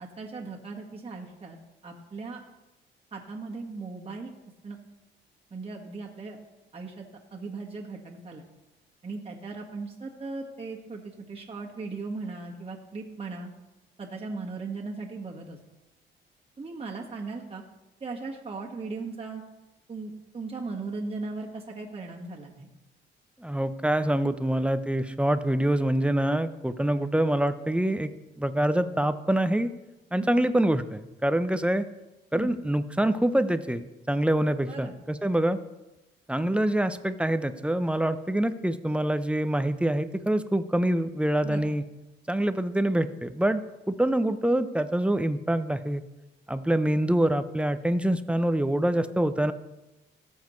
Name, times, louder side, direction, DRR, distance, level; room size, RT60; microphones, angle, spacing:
voice 1, 0.0-1.6 1.8-2.4 3.1-4.3 4.6-4.8 5.5-6.4 6.7-7.0 7.3-8.4 9.0-13.5 14.0-15.6 16.6-17.6 18.0-19.4 19.9-22.7 30.2-30.3 32.3-32.5 34.7-34.9 41.4-41.7, right 3 dB, 30° right, -2 dB, 1.7 m, -37 dB
voice 2, 23.4-28.1 28.4-29.7 30.1-31.8 32.3-35.6 36.3-41.8 42.3-46.0 46.5-49.5, right 1 dB, 5° right, 11 dB, 0.6 m, -25 dB
18.0 x 7.2 x 3.2 m, 1.0 s
cardioid pair, 90°, 20 cm